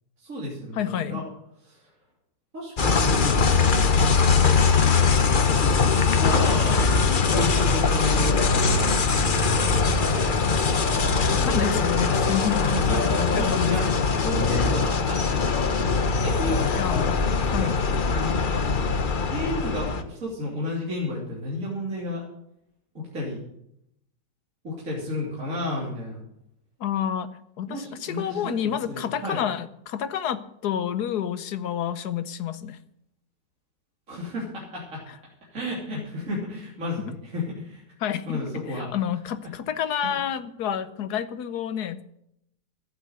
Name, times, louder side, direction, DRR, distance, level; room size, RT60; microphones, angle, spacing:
voice 1, 0.2-1.2 1.7-1.9 2.5-4.1 5.4-6.9 7.2-9.5 11.4-12.1 12.7-13.8 14.2-15.7 16.2-16.6 17.4-18.0 19.3-22.2 23.0-23.4 24.6-26.2 27.7-29.4 34.1-35.0 35.5-37.8 38.3-38.9 40.0-40.2, left 1 dB, 45° right, -5 dB, 3.4 m, -32 dB
voice 2, 0.7-1.2 11.3-12.7 13.3-14.1 16.7-17.8 26.8-27.3 27.6-32.8 38.0-38.4 38.7-42.1, left 9 dB, 65° left, 13 dB, 1.3 m, -29 dB
sound 1, 2.8-20.0, left 4 dB, 40° left, 0.8 m, -22 dB
12.5 x 8.8 x 7.9 m, 0.77 s
omnidirectional pair, 1.9 m